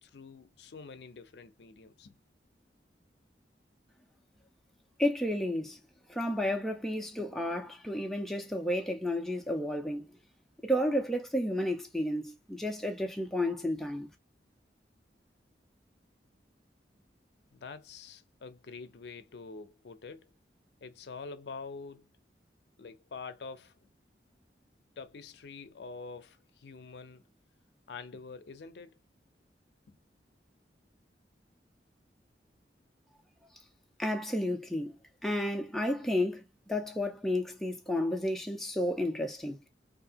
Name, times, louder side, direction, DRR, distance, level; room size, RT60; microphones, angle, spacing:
voice 1, 0.0-2.2 17.5-20.3 20.8-22.1 22.8-23.8 25.0-27.2 27.9-28.9 29.9-30.0, left 4 dB, 75° left, 0.5 m, -46 dB
voice 2, 5.0-5.8 6.1-10.1 10.6-14.1 34.0-39.6, left 1 dB, ahead, 0.4 m, -32 dB
2.8 x 2.4 x 2.7 m
head